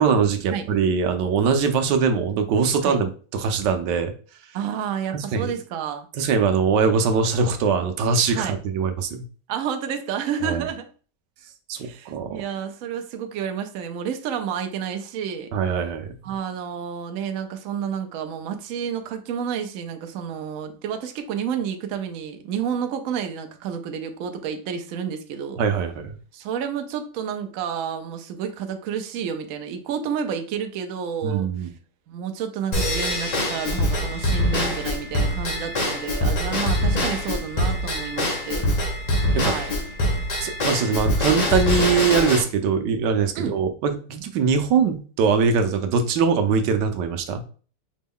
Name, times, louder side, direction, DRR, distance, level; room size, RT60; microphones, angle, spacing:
voice 1, 0.0-4.1 5.1-5.5 6.2-9.2 10.4-10.6 11.7-12.4 15.5-16.1 25.6-26.1 31.2-31.7 39.3-39.6 40.4-47.5, right 5 dB, 90° right, 7 dB, 1.3 m, -22 dB
voice 2, 4.5-6.1 8.3-8.6 9.5-10.9 11.8-15.5 16.2-25.6 26.3-31.7 32.1-38.7 39.3-39.7 43.4-43.6, right 7 dB, 65° right, 6 dB, 0.8 m, -30 dB
Drum kit / Drum / Bell, 32.7-42.4, left 1 dB, 40° left, 0.5 m, -24 dB
5.1 x 2.2 x 3.5 m, 0.39 s
omnidirectional pair, 1.8 m